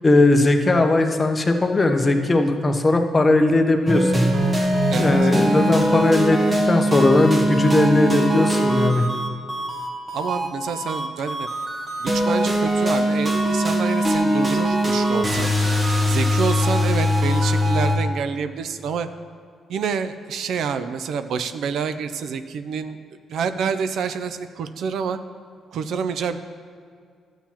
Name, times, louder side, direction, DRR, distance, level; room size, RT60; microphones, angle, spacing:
voice 1, 0.0-4.3 5.0-6.4 6.7-9.1, left 2 dB, 25° left, 4 dB, 0.8 m, -18 dB
sound 1, 3.9-18.0, equal, 30° right, 1.2 m, -21 dB
voice 2, 10.1-11.5 12.0-15.5 16.0-19.1 19.7-23.0 23.3-25.2 25.7-26.4, right 6 dB, 70° right, 10 dB, 0.4 m, -27 dB
11.5 x 7.2 x 2.9 m, 2.1 s
cardioid pair, 90°, 0 cm